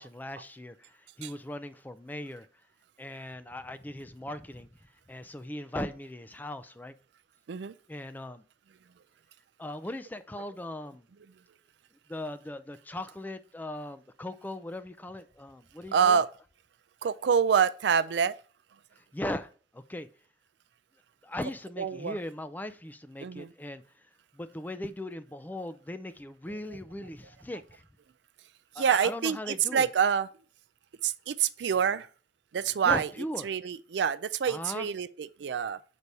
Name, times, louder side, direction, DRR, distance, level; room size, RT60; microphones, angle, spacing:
voice 1, 0.0-2.5 3.0-4.7 5.1-6.9 7.9-8.4 9.6-11.1 12.1-16.2 19.1-20.1 21.2-24.1 24.3-27.8 28.8-29.9 32.8-33.5 34.5-34.9, left 1 dB, 10° left, 0.4 m, -39 dB
voice 2, 15.9-16.3 17.0-18.3 21.8-22.1 23.2-23.5 26.7-26.8 28.8-30.3 31.0-32.1 32.5-33.1 33.4-35.8, right 7 dB, 70° right, 0.4 m, -26 dB
6.7 x 4.2 x 4.6 m
head